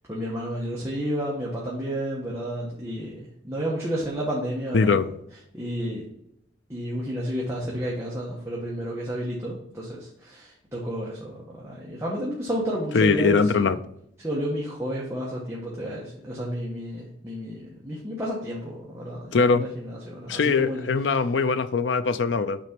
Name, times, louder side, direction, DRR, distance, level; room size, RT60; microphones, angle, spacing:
voice 1, 0.1-5.0 5.5-6.1 6.7-13.7 14.2-21.2, equal, 15° right, -5 dB, 1.2 m, -31 dB
voice 2, 4.7-5.1 12.9-13.8 19.3-19.7 20.3-22.6, left 4 dB, 65° left, 11 dB, 0.5 m, -21 dB
6.1 x 4.3 x 5.9 m, 0.74 s
head